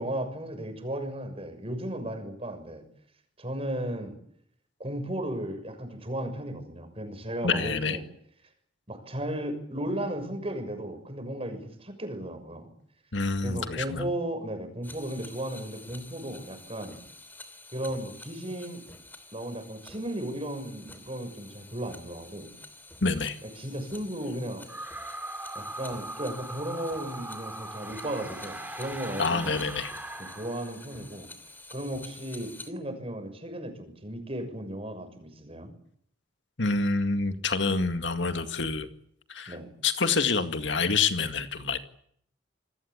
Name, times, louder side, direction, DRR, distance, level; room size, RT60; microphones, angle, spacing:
voice 1, 0.0-2.8 3.4-4.2 4.8-8.0 8.9-12.7 13.4-17.0 17.7-18.8 19.3-22.5 23.4-24.7 25.5-29.6 30.2-31.3 31.7-35.7 39.5-39.7, right 1 dB, 30° right, 7 dB, 6.5 m, -35 dB
voice 2, 7.4-8.0 13.1-14.0 23.0-23.4 29.2-29.9 36.6-38.9 39.3-39.6 39.8-41.8, left 4 dB, 75° left, 8 dB, 2.0 m, -27 dB
sound 1, 14.8-32.7, left 2 dB, 10° left, 3.0 m, -49 dB
sound 2, 24.6-31.1, right 1 dB, 10° right, 2.6 m, -40 dB
28.0 x 20.5 x 8.5 m, 0.68 s
head